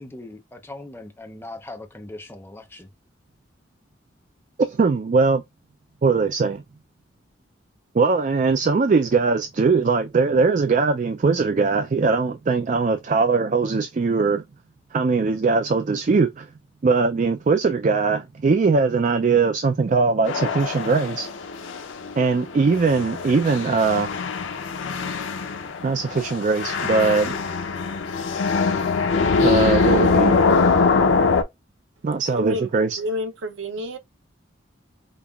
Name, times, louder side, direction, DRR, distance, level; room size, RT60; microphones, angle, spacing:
voice 1, 0.0-2.9, left 2 dB, 10° left, 0.5 m, -39 dB
voice 2, 4.6-5.4 6.0-6.6 7.9-14.4 14.9-16.5 16.8-21.3 22.2-24.1 25.8-27.3 29.4-30.4 32.0-33.0, right 4 dB, 40° right, 0.3 m, -20 dB
sound 1, 20.3-31.4, left 4 dB, 85° left, 0.6 m, -23 dB
voice 3, 32.3-32.7 33.0-34.0, left 1 dB, 80° right, 0.7 m, -29 dB
5.2 x 2.4 x 2.3 m
head